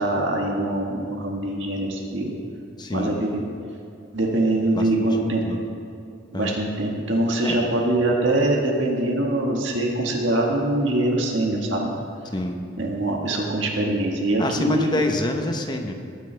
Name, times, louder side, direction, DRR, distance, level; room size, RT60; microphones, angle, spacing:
voice 1, 0.0-2.3 2.9-3.4 4.1-5.6 6.3-11.9 12.8-15.0, right 1 dB, 65° right, -1 dB, 1.7 m, -23 dB
voice 2, 2.8-3.2 4.7-5.6 6.3-6.6 7.4-7.7 12.3-12.6 14.4-15.9, left 1 dB, 20° left, 4 dB, 0.9 m, -27 dB
19.5 x 9.0 x 3.4 m, 2.5 s
head